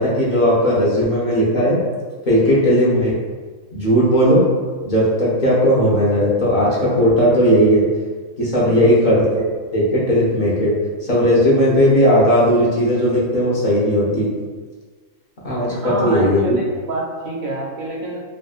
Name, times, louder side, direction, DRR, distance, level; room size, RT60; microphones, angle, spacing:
voice 1, 0.0-1.8 2.2-3.1 3.7-4.4 4.8-7.8 8.4-9.4 9.7-10.7 11.0-14.3 15.4-16.6, equal, 45° left, -7 dB, 0.8 m, -16 dB
voice 2, 15.7-18.2, right 2 dB, 90° right, -3 dB, 1.1 m, -28 dB
3.0 x 2.4 x 2.4 m, 1.5 s
omnidirectional pair, 1.4 m